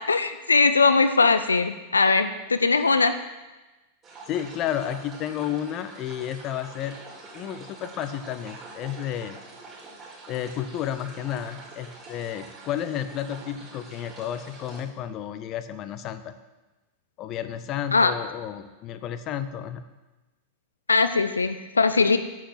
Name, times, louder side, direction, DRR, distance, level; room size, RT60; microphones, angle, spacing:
voice 1, 0.0-3.1 17.9-18.1 20.9-22.2, left 4 dB, 75° left, 10 dB, 0.5 m, -20 dB
sound 1, 4.0-14.8, right 3 dB, 20° right, 4.0 m, -45 dB
voice 2, 4.3-7.0 7.3-9.4 10.3-16.3 17.2-19.8, left 10 dB, 35° left, 11 dB, 0.8 m, -32 dB
10.0 x 7.5 x 7.6 m, 1.1 s
figure-of-eight pair, 90°, 0 cm